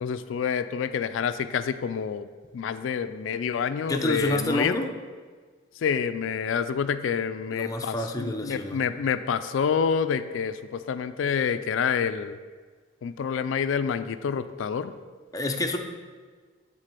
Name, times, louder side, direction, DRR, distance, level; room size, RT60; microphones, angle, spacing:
voice 1, 0.0-2.3 2.5-4.8 5.8-12.4 13.0-14.9, left 7 dB, 75° left, 11 dB, 0.3 m, -28 dB
voice 2, 3.9-4.9 7.5-8.8 15.3-15.8, left 1 dB, 20° left, 3 dB, 0.6 m, -28 dB
7.5 x 3.8 x 6.6 m, 1.5 s
head